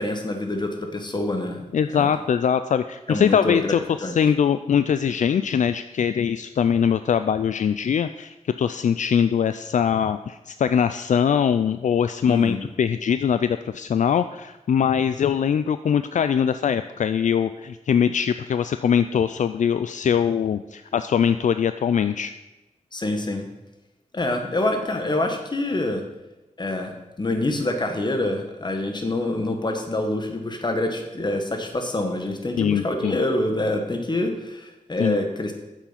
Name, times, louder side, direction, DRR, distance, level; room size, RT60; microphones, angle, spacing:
voice 1, 0.0-2.1 3.1-3.7 4.0-4.1 12.2-12.6 22.9-23.5 24.1-26.0 26.6-26.9 27.2-35.5, left 1 dB, 35° left, 5 dB, 1.6 m, -26 dB
voice 2, 1.7-22.3 32.6-33.2 35.0-35.2, left 8 dB, 70° left, 11 dB, 0.4 m, -22 dB
8.8 x 7.3 x 5.9 m, 1.0 s
wide cardioid pair, 80°, 13 cm